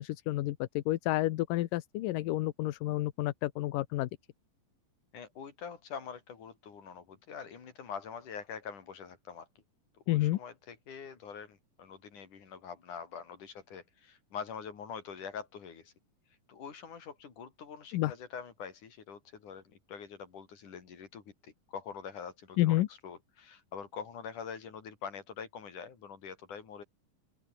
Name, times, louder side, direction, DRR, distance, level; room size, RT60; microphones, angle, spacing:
voice 1, 0.0-4.1 10.1-10.4 17.9-18.1 22.6-22.9, left 16 dB, 75° left, 2.5 m, -30 dB
voice 2, 5.1-9.5 10.1-15.9 16.5-22.8 23.0-26.8, left 6 dB, 60° left, 5.0 m, -45 dB
open air
omnidirectional pair, 4.0 m